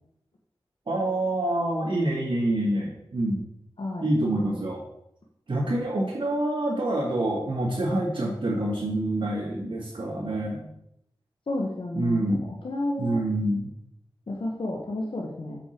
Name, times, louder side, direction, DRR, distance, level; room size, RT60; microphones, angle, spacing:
voice 1, 0.9-3.5 4.0-4.8 5.5-10.7 11.9-12.4 13.0-13.7, right 1 dB, 60° right, -6 dB, 2.2 m, -26 dB
voice 2, 11.5-12.3 12.6-13.2 14.3-15.6, left 1 dB, 65° left, 0 dB, 1.2 m, -31 dB
6.7 x 6.2 x 4.5 m, 0.80 s
cardioid pair, 45°, 9 cm